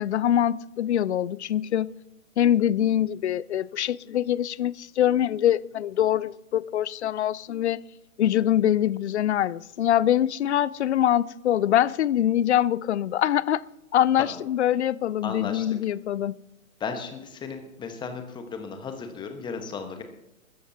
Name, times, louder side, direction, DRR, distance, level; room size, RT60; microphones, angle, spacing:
voice 1, 0.0-1.9 2.4-7.8 8.2-13.6 13.9-16.3, left 11 dB, 55° left, 21 dB, 0.5 m, -24 dB
voice 2, 15.2-15.7 16.8-20.0, left 5 dB, 10° left, 6 dB, 1.3 m, -35 dB
25.0 x 13.5 x 2.8 m, 0.91 s
figure-of-eight pair, 125°, 42 cm